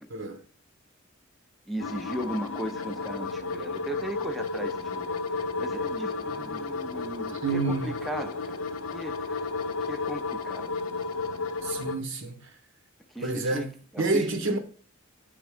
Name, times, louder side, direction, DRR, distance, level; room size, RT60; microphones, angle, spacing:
voice 1, 1.7-10.7 13.1-13.7 13.9-14.3, right 1 dB, ahead, 0.6 m, -37 dB
sound 1, 1.8-11.9, left 4 dB, 80° left, 0.6 m, -33 dB
voice 2, 7.4-8.0 11.6-12.5 13.2-14.6, right 3 dB, 65° right, 1.1 m, -29 dB
9.1 x 3.5 x 4.9 m
head